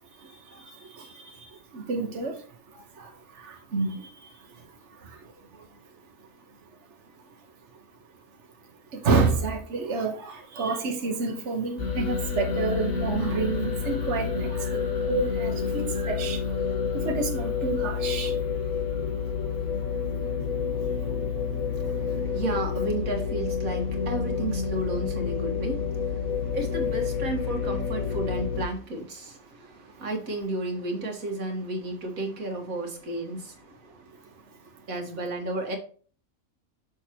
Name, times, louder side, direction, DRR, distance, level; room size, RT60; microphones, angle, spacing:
voice 1, 1.7-2.3 3.7-3.9 9.0-10.1 10.6-14.5 15.1-15.5 16.0-16.4 17.0-18.3, right 4 dB, 55° right, 1.5 m, -27 dB
sound 1, 11.8-28.6, left 6 dB, 80° left, 2.0 m, -29 dB
voice 2, 21.7-33.7 34.9-35.8, right 2 dB, 85° right, 2.1 m, -33 dB
6.4 x 6.4 x 2.9 m
omnidirectional pair, 1.4 m